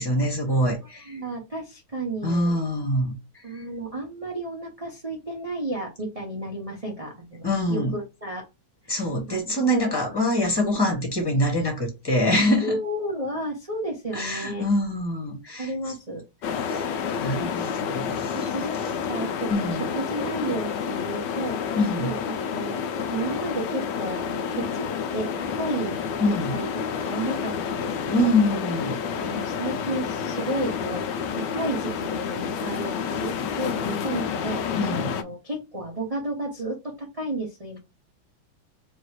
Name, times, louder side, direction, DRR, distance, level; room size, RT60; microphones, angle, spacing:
voice 1, 0.0-1.2 2.2-3.1 7.4-7.9 8.9-12.8 14.1-15.7 16.6-18.4 19.5-19.9 21.8-22.1 26.2-26.6 28.1-28.9 34.7-35.1, left 1 dB, 15° left, 1.2 m, -24 dB
voice 2, 1.0-2.5 3.4-8.4 8.8-9.0 9.3-9.4 9.7-9.9 12.6-14.6 15.6-16.2 17.2-17.5 17.8-18.0 18.3-22.8 23.1-24.9 25.1-26.0 26.3-28.3 29.2-34.6 34.9-37.8, right 1 dB, 30° right, 0.7 m, -32 dB
sound 1, 16.4-35.2, left 7 dB, 70° left, 1.2 m, -29 dB
3.2 x 3.0 x 4.7 m
omnidirectional pair, 2.2 m